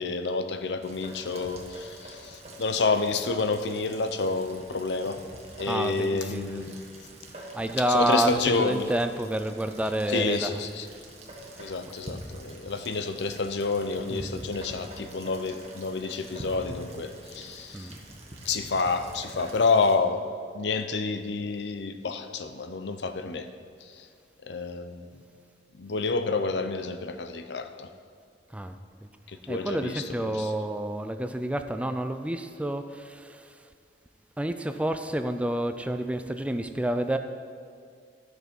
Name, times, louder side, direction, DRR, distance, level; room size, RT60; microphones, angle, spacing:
voice 1, 0.0-5.2 5.6-6.8 7.9-8.9 10.1-10.9 11.6-17.9 18.4-20.3 20.5-23.5 23.8-24.1 24.4-25.1 25.7-27.9 29.3-30.5, left 4 dB, 75° left, 8 dB, 0.7 m, -29 dB
Rain, 0.8-20.0, right 1 dB, 40° right, 1.4 m, -45 dB
voice 2, 5.7-6.6 7.5-10.6 11.5-11.7 14.1-14.3 17.7-18.0 28.5-28.8 29.5-33.7 34.4-37.2, right 1 dB, 5° right, 8 dB, 0.4 m, -29 dB
12.5 x 6.2 x 5.3 m, 2.3 s
head